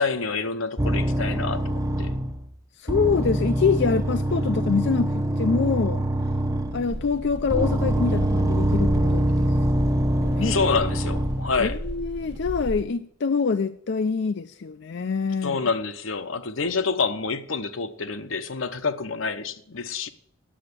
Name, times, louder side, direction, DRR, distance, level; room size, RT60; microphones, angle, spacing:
voice 1, 0.0-2.1 10.4-11.8 15.4-20.1, left 4 dB, 85° left, 0.9 m, -27 dB
sound 1, 0.8-2.5 2.9-7.0 7.5-11.7, right 1 dB, 15° right, 0.7 m, -24 dB
voice 2, 2.8-6.0 6.7-9.2 10.2-10.6 11.6-15.6, left 5 dB, 60° left, 0.4 m, -25 dB
sound 2, 6.9-12.8, equal, 55° right, 1.3 m, -34 dB
10.0 x 7.9 x 8.3 m
head